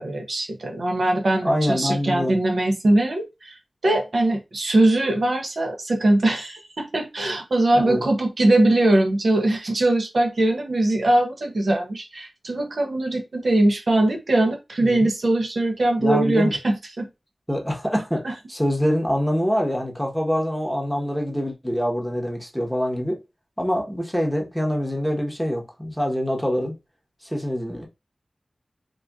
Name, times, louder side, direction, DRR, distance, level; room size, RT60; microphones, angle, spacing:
voice 1, 0.0-3.6 3.8-17.1 18.2-18.3, right 1 dB, 75° right, 0.6 m, -21 dB
voice 2, 1.4-2.4 7.7-8.0 14.8-15.1 16.0-16.5 17.5-23.2 23.6-26.7 27.2-27.9, equal, 5° right, 0.9 m, -25 dB
3.8 x 2.4 x 2.3 m
cardioid pair, 50°, 0 cm